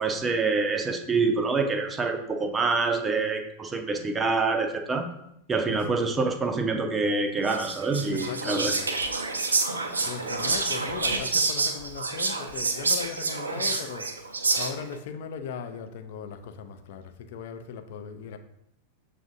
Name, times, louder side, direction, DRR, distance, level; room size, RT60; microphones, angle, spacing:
voice 1, 0.0-5.1 5.5-8.7, right 3 dB, 15° right, 5 dB, 0.5 m, -26 dB
Whispering, 7.5-14.9, right 3 dB, 75° right, 0.5 m, -28 dB
voice 2, 8.1-8.9 10.0-14.1 14.6-18.4, left 7 dB, 55° left, 8 dB, 0.4 m, -38 dB
6.9 x 2.5 x 2.5 m, 0.81 s
figure-of-eight pair, 90°, 0 cm